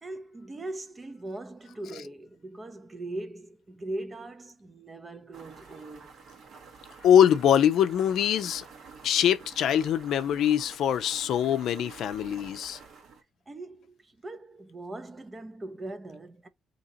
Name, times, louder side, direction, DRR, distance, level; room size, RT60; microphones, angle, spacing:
voice 1, 0.0-6.1 13.5-16.5, right 2 dB, 25° right, 0.7 m, -40 dB
sound 1, 5.3-13.2, right 5 dB, 70° right, 1.4 m, -49 dB
voice 2, 7.0-8.6 9.0-12.8, left 9 dB, 75° left, 0.4 m, -23 dB
2.9 x 2.8 x 4.0 m
cardioid pair, 90°, 0 cm